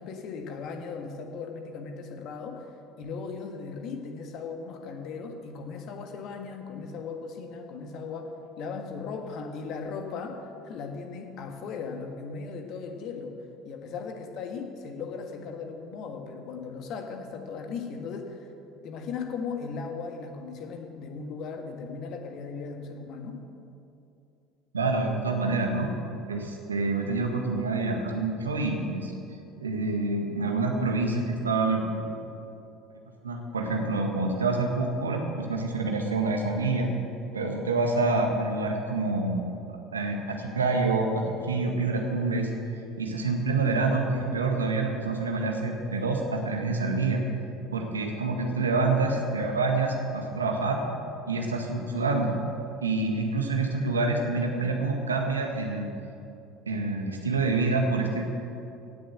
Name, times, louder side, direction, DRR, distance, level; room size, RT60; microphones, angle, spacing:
voice 1, 0.0-18.5 18.8-23.4, left 5 dB, 50° left, 4 dB, 1.7 m, -37 dB
voice 2, 24.7-25.9 26.3-29.1 29.6-32.1 33.2-36.9 37.3-39.5 39.9-42.5 43.0-47.2 47.7-50.8 51.3-52.4 52.8-55.9 56.7-58.3, right 3 dB, 80° right, 2 dB, 1.6 m, -27 dB
16.5 x 7.0 x 8.0 m, 2.7 s
figure-of-eight pair, 65°, 0 cm